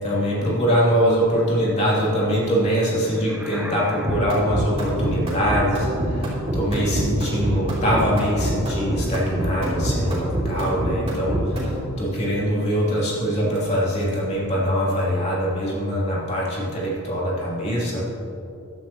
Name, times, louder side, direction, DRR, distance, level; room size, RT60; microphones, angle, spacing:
voice 1, 0.0-18.0, equal, 30° left, -6 dB, 2.8 m, -23 dB
sound 1, 3.0-4.7, right 1 dB, 5° right, 0.6 m, -37 dB
sound 2, 4.0-11.8, right 1 dB, 30° right, 3.0 m, -25 dB
15.0 x 11.5 x 2.9 m, 2.8 s
head